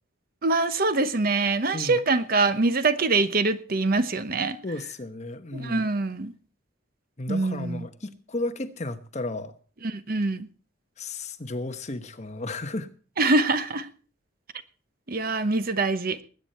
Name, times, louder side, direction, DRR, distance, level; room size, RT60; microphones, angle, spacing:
voice 1, 0.4-4.6 5.5-6.3 7.3-7.9 9.8-10.5 13.2-13.9 15.1-16.2, right 3 dB, 50° right, 12 dB, 0.9 m, -24 dB
voice 2, 4.6-5.9 7.2-9.5 11.0-12.9, left 2 dB, 35° left, 8 dB, 1.1 m, -34 dB
20.5 x 9.1 x 4.4 m, 0.38 s
head